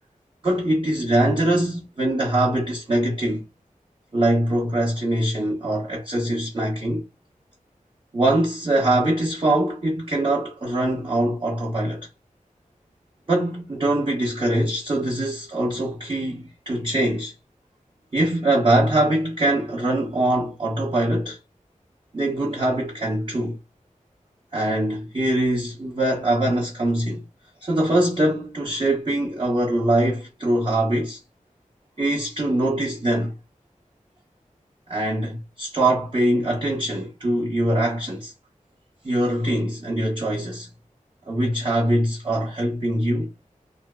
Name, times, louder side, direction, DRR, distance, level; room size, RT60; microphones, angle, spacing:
voice 1, 0.4-3.4 4.1-7.0 8.1-12.1 13.3-17.3 18.1-21.4 22.1-23.6 24.5-27.2 27.6-31.2 32.0-33.3 34.9-38.3 39.0-40.7 41.3-43.3, right 1 dB, 35° right, 0.7 m, -23 dB
2.5 x 2.3 x 2.2 m
wide cardioid pair, 60°, 14 cm